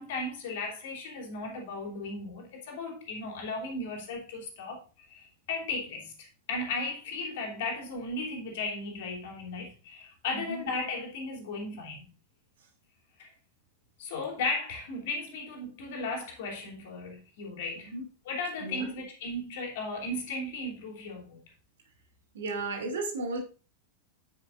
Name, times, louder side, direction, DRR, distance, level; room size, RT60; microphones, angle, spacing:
voice 1, 0.0-12.1 13.2-13.3 14.0-17.9 18.2-21.4, left 2 dB, 55° left, 3.2 m, -36 dB
voice 2, 10.3-10.6 17.8-18.0 18.6-18.9 22.3-23.4, right 3 dB, 60° right, 2.7 m, -34 dB
9.7 x 9.3 x 2.6 m
figure-of-eight pair, 90°, 0 cm